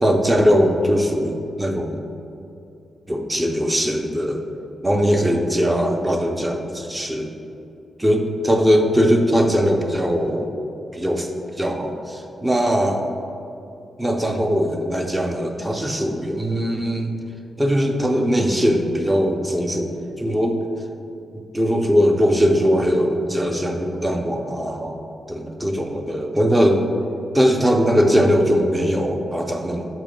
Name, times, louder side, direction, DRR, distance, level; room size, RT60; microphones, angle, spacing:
voice 1, 0.0-2.0 3.1-4.4 4.8-7.3 8.0-10.5 10.9-11.3 11.6-13.1 14.0-17.1 17.6-19.9 20.2-20.6 21.5-25.0 25.3-26.8 27.3-29.9, equal, 10° right, 3 dB, 0.4 m, -20 dB
6.6 x 3.0 x 5.0 m, 2.7 s
wide cardioid pair, 155°, 0 cm